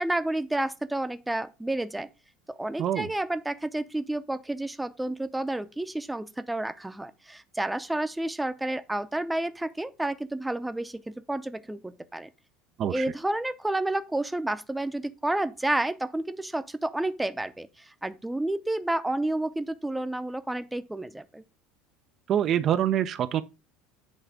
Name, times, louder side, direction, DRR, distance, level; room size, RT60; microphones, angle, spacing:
voice 1, 0.0-2.1 2.6-12.3 12.9-21.4, right 1 dB, 10° right, 0.7 m, -30 dB
voice 2, 22.3-23.4, right 10 dB, 45° right, 0.5 m, -25 dB
8.0 x 3.2 x 4.9 m
hypercardioid pair, 70°, 0 cm